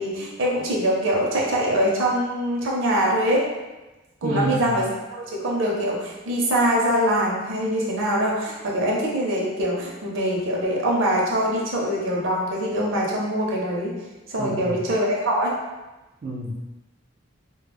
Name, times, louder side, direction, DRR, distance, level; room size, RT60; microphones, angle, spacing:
voice 1, 0.0-3.5 4.2-4.8 5.1-13.9 14.3-15.5, equal, 75° right, -3 dB, 0.6 m, -23 dB
voice 2, 4.2-4.6 14.4-14.7 16.2-16.8, right 1 dB, 40° right, -5 dB, 0.3 m, -28 dB
2.2 x 2.0 x 3.3 m, 1.1 s
head